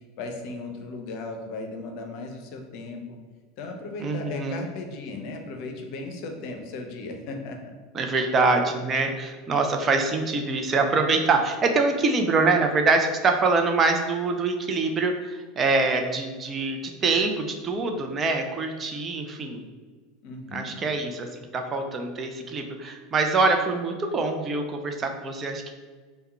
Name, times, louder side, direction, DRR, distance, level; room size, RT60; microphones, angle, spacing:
voice 1, 0.2-3.2 3.6-7.7 20.2-20.8, left 3 dB, 60° left, 3 dB, 0.6 m, -36 dB
voice 2, 4.0-4.6 7.9-19.6 20.5-25.7, right 3 dB, 30° right, 4 dB, 0.5 m, -24 dB
3.5 x 2.2 x 4.2 m, 1.4 s
hypercardioid pair, 80°, 0 cm